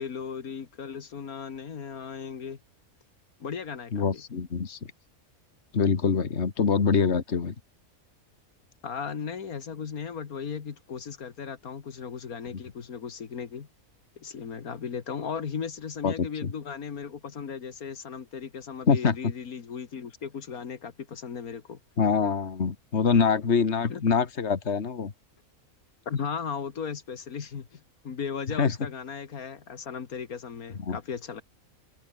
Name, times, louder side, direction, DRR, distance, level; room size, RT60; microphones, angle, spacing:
voice 1, 0.0-2.6 3.4-4.2 8.8-13.7 14.2-21.8 23.9-24.0 26.1-31.4, left 6 dB, 80° left, 2.1 m, -36 dB
voice 2, 3.9-4.8 5.7-7.5 16.0-16.5 18.9-19.2 22.0-25.1 28.6-28.7 30.9-31.0, left 5 dB, 50° left, 2.0 m, -24 dB
omnidirectional pair, 1.5 m